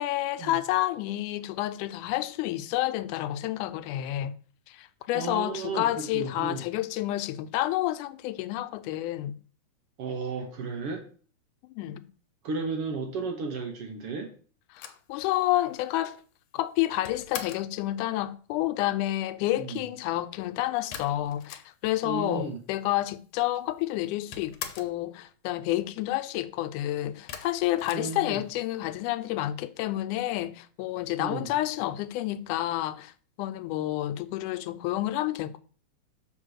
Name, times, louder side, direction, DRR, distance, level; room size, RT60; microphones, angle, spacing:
voice 1, 0.0-4.3 4.7-9.3 11.7-12.0 14.7-16.2 16.5-33.1 33.4-35.6, left 15 dB, 90° left, 2.1 m, -29 dB
voice 2, 5.1-6.6 10.0-11.0 12.4-14.3 19.6-19.9 22.0-22.6 27.9-28.4 31.2-31.5, right 4 dB, 65° right, 1.5 m, -34 dB
sound 1, 14.7-17.8 20.9-22.1 22.4-22.5 22.6-23.4 23.7-25.0 27.3-28.8, left 9 dB, 70° left, 1.8 m, -42 dB
6.3 x 4.1 x 6.3 m
omnidirectional pair, 3.5 m